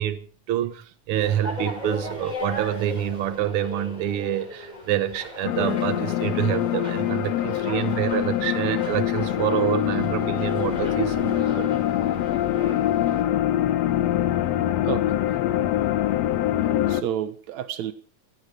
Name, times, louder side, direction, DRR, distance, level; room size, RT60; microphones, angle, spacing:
voice 1, 0.0-11.7, right 11 dB, 60° right, 1.7 m, -27 dB
sound 1, 1.2-13.2, left 1 dB, 15° left, 5.6 m, -37 dB
sound 2, 5.4-17.0, left 12 dB, 70° left, 1.9 m, -24 dB
voice 2, 12.5-12.9 14.8-15.2 16.3-16.4 16.9-17.9, right 10 dB, 75° right, 2.5 m, -31 dB
17.0 x 14.0 x 4.8 m
omnidirectional pair, 3.3 m